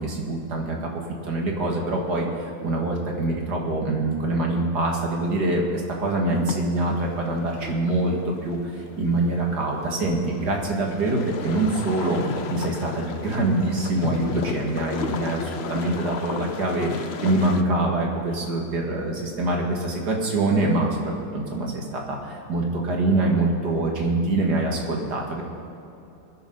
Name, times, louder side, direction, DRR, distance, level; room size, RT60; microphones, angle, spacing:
voice 1, 0.0-8.2 8.4-25.4, right 2 dB, 80° right, 0 dB, 2.6 m, -25 dB
sound 1, 6.3-17.6, left 5 dB, 50° left, 0.9 m, -34 dB
23.0 x 9.8 x 4.0 m, 2.9 s
omnidirectional pair, 1.7 m